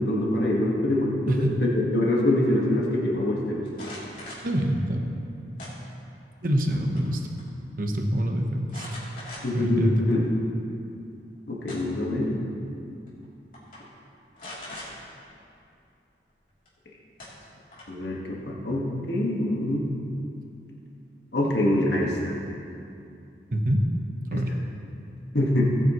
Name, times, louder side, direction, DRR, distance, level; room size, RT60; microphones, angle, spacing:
voice 1, 0.0-3.6 9.4-10.3 11.5-12.4 17.9-20.0 21.3-22.3 24.3-24.4 25.3-25.6, left 1 dB, 75° left, -3 dB, 1.7 m, -25 dB
voice 2, 1.3-1.6 4.4-5.1 6.4-7.2 7.8-8.8 9.5-10.1 23.5-23.9 24.3-24.6, equal, 50° right, 3 dB, 1.1 m, -25 dB
sound 1, 3.7-4.5 5.6-6.2 6.6-7.1 7.4-7.5 8.7-9.7 10.2-10.3 11.3-12.1 13.1-13.2 13.5-13.8 14.4-14.9 16.6-16.7 17.2-18.0, left 1 dB, 50° left, 3.2 m, -41 dB
18.5 x 9.1 x 3.1 m, 2.6 s
head